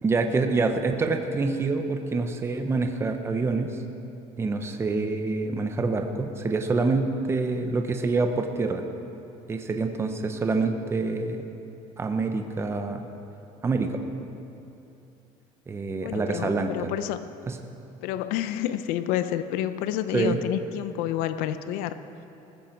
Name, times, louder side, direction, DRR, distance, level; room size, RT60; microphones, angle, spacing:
voice 1, 0.0-3.7 4.4-8.8 9.5-11.4 12.0-13.0 13.6-14.0 15.7-16.9 17.5-17.6 20.1-20.4, right 3 dB, 20° right, 6 dB, 0.9 m, -26 dB
voice 2, 16.0-17.2 18.0-22.0, left 12 dB, 85° left, 11 dB, 0.7 m, -29 dB
19.5 x 14.5 x 4.6 m, 2.8 s
cardioid pair, 150°, 14 cm